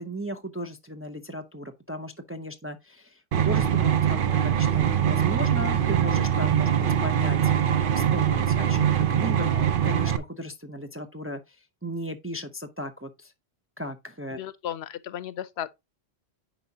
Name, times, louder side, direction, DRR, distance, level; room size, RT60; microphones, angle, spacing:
voice 1, 0.0-7.4 7.9-11.6 11.8-13.3 13.8-14.4, right 1 dB, 20° right, 0.4 m, -36 dB
sound 1, 3.3-10.2, right 9 dB, 60° right, 0.8 m, -23 dB
voice 2, 14.3-15.7, left 10 dB, 85° left, 0.9 m, -35 dB
9.2 x 4.9 x 2.7 m
omnidirectional pair, 1.1 m